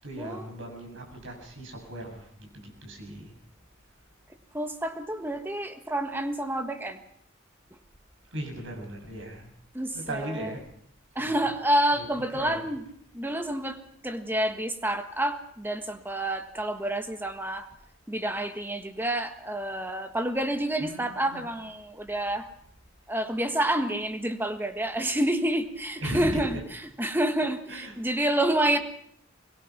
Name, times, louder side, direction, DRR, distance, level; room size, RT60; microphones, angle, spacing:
voice 1, 0.0-3.4 8.3-9.5 9.9-10.7 11.2-11.5 11.9-12.0 12.3-12.6 20.8-21.4 26.0-26.6 27.7-28.0 28.7-28.8, right 1 dB, 65° right, 2 dB, 7.4 m, -37 dB
voice 2, 4.5-7.0 9.7-10.0 10.4-10.5 11.1-12.8 13.1-13.8 14.0-17.7 18.1-22.5 23.1-26.6 27.0-28.8, right 1 dB, 10° right, 7 dB, 1.5 m, -28 dB
23.5 x 21.5 x 6.0 m, 0.69 s
head